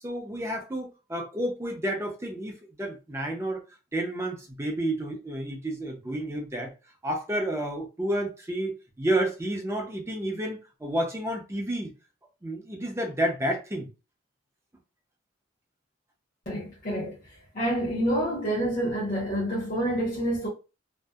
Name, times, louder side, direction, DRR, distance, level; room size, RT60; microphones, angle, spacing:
voice 1, 0.0-3.6 3.9-6.7 7.0-11.9 12.4-13.9, right 1 dB, 15° right, 0.5 m, -30 dB
voice 2, 16.5-17.2 17.5-20.5, right 1 dB, 45° left, 0.9 m, -28 dB
2.6 x 2.0 x 2.3 m
head